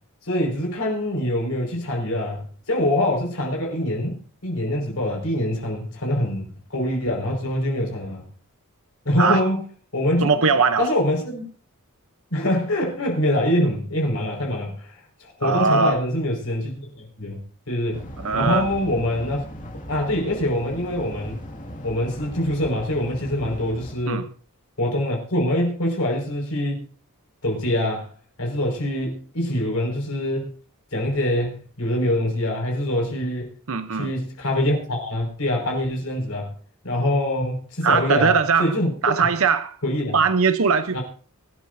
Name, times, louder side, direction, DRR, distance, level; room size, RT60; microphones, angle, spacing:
voice 1, 0.3-8.2 9.0-9.6 9.9-10.3 10.8-11.4 12.3-14.9 15.2-17.4 17.7-18.0 18.3-19.4 19.9-21.4 21.8-24.3 24.8-26.8 27.4-28.1 28.4-30.5 30.9-33.5 33.9-36.5 36.8-38.3 38.6-38.9 39.8-40.2 40.9-41.0, left 1 dB, 70° left, 5.2 m, -24 dB
voice 2, 10.2-10.9 15.4-16.0 18.2-18.7 24.1-24.2 33.7-34.1 37.8-38.7 39.0-39.8 40.1-41.0, right 5 dB, 65° right, 0.8 m, -20 dB
sound 1, 17.9-23.9, equal, 35° left, 2.1 m, -38 dB
24.5 x 12.5 x 2.7 m
head